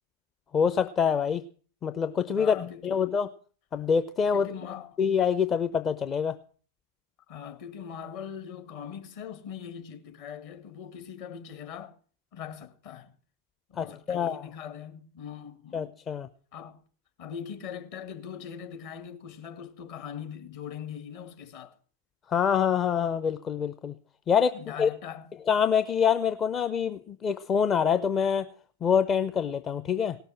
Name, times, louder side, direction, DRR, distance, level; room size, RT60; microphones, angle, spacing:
voice 1, 0.5-1.4 1.8-3.3 3.7-4.5 5.0-6.3 13.8-14.4 15.7-16.3 22.3-23.9 24.3-24.9 25.5-28.5 28.8-30.2, left 7 dB, 25° left, 0.7 m, -25 dB
voice 2, 2.3-3.1 4.3-5.0 7.3-11.9 12.3-13.1 13.7-15.9 16.5-16.8 17.2-21.8 24.5-25.3, left 8 dB, 45° left, 1.9 m, -41 dB
18.0 x 6.9 x 8.9 m
figure-of-eight pair, 90°, 0 cm